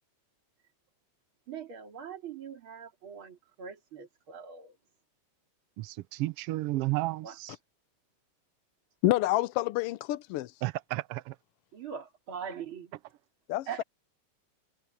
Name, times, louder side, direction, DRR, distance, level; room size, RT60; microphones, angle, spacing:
voice 1, 1.5-4.8 7.2-7.3 11.7-12.9 13.7-13.8, right 7 dB, 45° right, 3.6 m, -42 dB
voice 2, 5.8-7.5 10.6-11.4, right 18 dB, 90° right, 1.3 m, -32 dB
voice 3, 9.0-10.5 13.5-13.8, left 16 dB, 80° left, 1.4 m, -28 dB
omnidirectional pair, 3.3 m